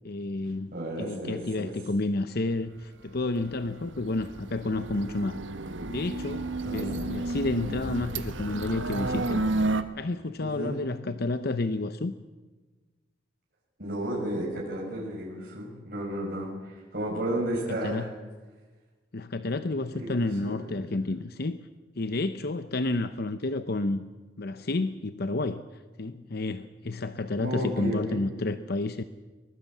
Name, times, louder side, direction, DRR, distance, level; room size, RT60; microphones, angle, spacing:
voice 1, 0.0-5.4 5.9-9.4 10.0-12.1 17.2-17.3 17.7-18.1 19.1-21.6 22.0-24.0 24.4-29.0, left 2 dB, 55° left, 11 dB, 0.8 m, -30 dB
voice 2, 0.7-1.7 6.6-7.1 10.4-10.8 13.8-18.1 19.9-20.8 27.4-28.2, right 1 dB, 55° right, -3 dB, 5.5 m, -33 dB
sound 1, 3.4-9.8, right 2 dB, 85° right, 1.4 m, -31 dB
24.0 x 21.0 x 7.3 m, 1.3 s
head